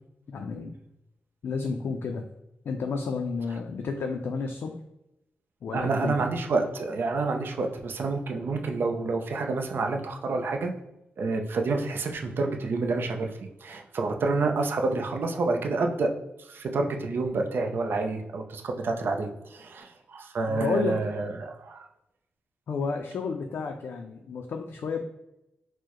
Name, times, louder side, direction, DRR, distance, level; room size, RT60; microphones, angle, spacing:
voice 1, 0.3-0.7 1.4-2.2 2.6-4.8 5.6-6.2 20.5-21.0 22.7-25.0, left 5 dB, 70° left, 4 dB, 0.4 m, -31 dB
voice 2, 5.7-10.7 11.2-16.1 16.4-21.9, right 3 dB, 60° right, 3 dB, 0.5 m, -28 dB
4.4 x 2.1 x 2.9 m, 0.87 s
cardioid pair, 90°, 4 cm